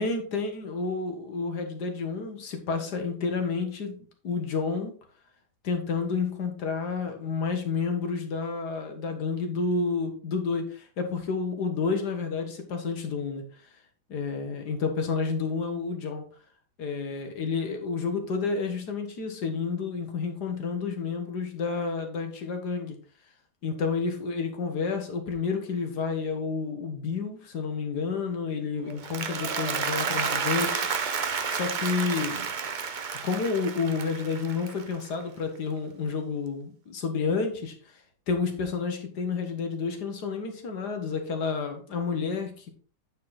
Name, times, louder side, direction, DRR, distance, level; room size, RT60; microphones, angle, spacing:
voice 1, 0.0-4.0 4.2-5.0 5.6-13.4 14.1-16.2 16.8-23.0 23.6-30.8 31.5-32.4 33.2-37.7 38.3-42.7, left 5 dB, 70° left, 5 dB, 1.8 m, -30 dB
Applause, 28.9-35.2, right 6 dB, 75° right, 0.4 m, -31 dB
8.9 x 4.1 x 4.1 m, 0.42 s
omnidirectional pair, 1.8 m